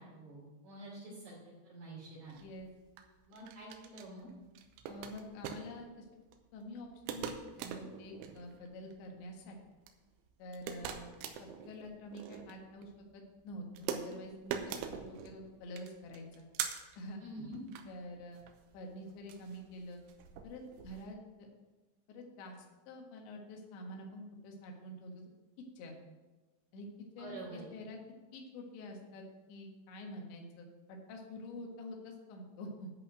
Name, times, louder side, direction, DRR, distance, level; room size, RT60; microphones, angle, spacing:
voice 1, 0.0-2.3 3.3-4.3 17.2-17.6 27.1-27.7, right 1 dB, 55° right, -7 dB, 4.3 m, -48 dB
sound 1, 2.3-21.1, right 8 dB, 80° right, 3.1 m, -44 dB
voice 2, 2.4-2.7 4.9-6.1 6.5-9.6 10.4-11.1 11.4-16.5 17.0-17.2 17.9-18.4 18.7-20.0 20.4-21.5 22.1-22.6 22.9-25.2 25.8-26.0 26.7-26.9 27.2-28.0 28.3-32.9, left 1 dB, 70° left, 1 dB, 3.6 m, -47 dB
11.0 x 5.5 x 7.6 m, 1.2 s
omnidirectional pair, 5.9 m